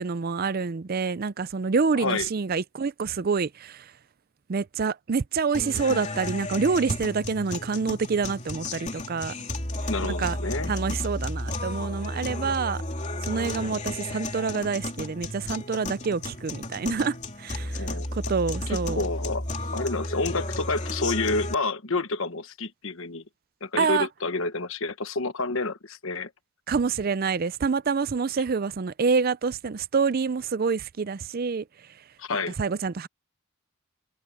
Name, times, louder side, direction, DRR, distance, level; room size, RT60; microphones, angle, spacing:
voice 1, 0.0-3.9 4.5-9.4 10.0-10.4 10.7-12.8 13.2-19.1 23.8-24.1 26.7-31.6 32.3-33.1, right 5 dB, 40° right, 0.4 m, -27 dB
voice 2, 1.9-2.3 9.9-10.7 17.8-18.1 18.7-19.4 19.7-23.2 23.6-26.3 32.2-32.6, left 3 dB, 60° left, 1.2 m, -29 dB
sound 1, 5.5-21.5, left 1 dB, 30° left, 3.1 m, -33 dB
head